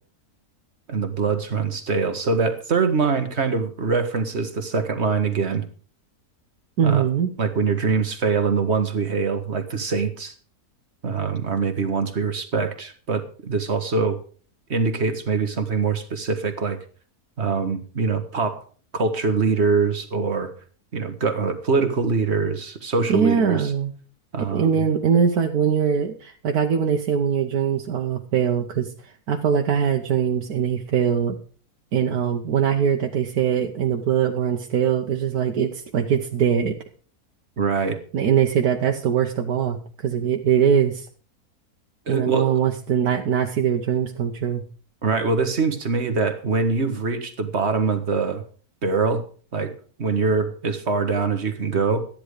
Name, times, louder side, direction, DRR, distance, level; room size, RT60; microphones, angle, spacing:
voice 1, 0.9-5.6 6.8-7.1 7.4-10.3 11.0-14.2 14.7-16.8 17.4-18.6 18.9-20.5 20.9-23.7 24.3-24.7 37.6-38.0 42.1-42.6 45.0-48.4 48.8-49.2 49.5-49.7 50.0-52.0, right 4 dB, 45° right, 7 dB, 1.7 m, -23 dB
voice 2, 6.8-7.3 23.1-23.9 24.5-31.4 31.9-36.8 38.1-41.1 42.1-44.6, right 8 dB, 80° right, 3 dB, 1.5 m, -22 dB
13.5 x 10.5 x 5.0 m, 0.41 s
omnidirectional pair, 1.6 m